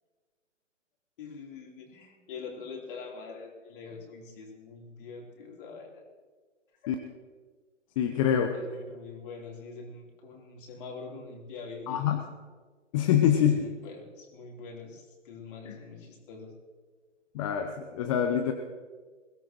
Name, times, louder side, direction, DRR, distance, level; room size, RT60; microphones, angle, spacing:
voice 1, 1.2-6.0 6.8-7.0 8.5-12.2 13.3-16.5, left 4 dB, 45° left, -1 dB, 3.7 m, -44 dB
voice 2, 8.0-8.5 11.9-12.2 12.9-13.6 15.7-15.8 17.3-18.5, left 9 dB, 25° left, 5 dB, 0.8 m, -25 dB
21.5 x 16.0 x 3.1 m, 1.5 s
figure-of-eight pair, 130°, 37 cm